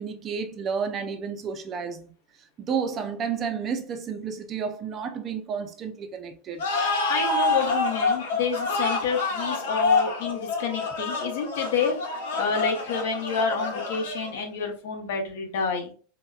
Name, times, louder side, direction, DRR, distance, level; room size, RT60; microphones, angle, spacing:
voice 1, 0.0-2.1 2.6-6.7, right 6 dB, 20° right, 0.4 m, -31 dB
sound 1, 6.6-14.4, left 3 dB, 90° left, 1.0 m, -27 dB
voice 2, 7.1-12.0 12.3-15.9, left 5 dB, 65° left, 0.8 m, -28 dB
3.9 x 2.1 x 2.2 m
supercardioid pair, 175°, 0 cm